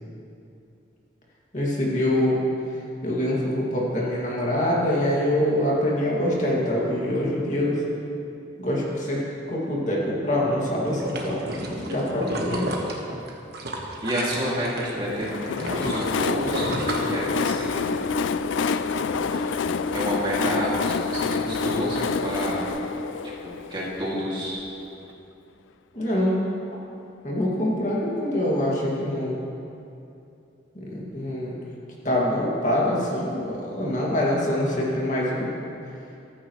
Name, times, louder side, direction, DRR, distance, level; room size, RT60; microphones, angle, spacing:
voice 1, 1.5-2.4 3.0-7.8 8.6-12.7 25.9-26.4 27.2-29.4 30.7-31.6 32.0-35.5, left 1 dB, 40° left, -5 dB, 2.3 m, -25 dB
sound 1, 10.8-14.9 15.2-17.7 18.2-18.3, right 2 dB, 55° right, 1.4 m, -32 dB
voice 2, 14.0-18.0 18.9-19.5 19.9-22.6 23.4-24.6, equal, 25° right, -6 dB, 2.5 m, -30 dB
Train, 15.0-24.7, left 6 dB, 80° left, 0.4 m, -28 dB
sound 2, 16.8-22.7, left 1 dB, 65° left, 2.0 m, -33 dB
14.5 x 14.0 x 3.2 m, 2.7 s
head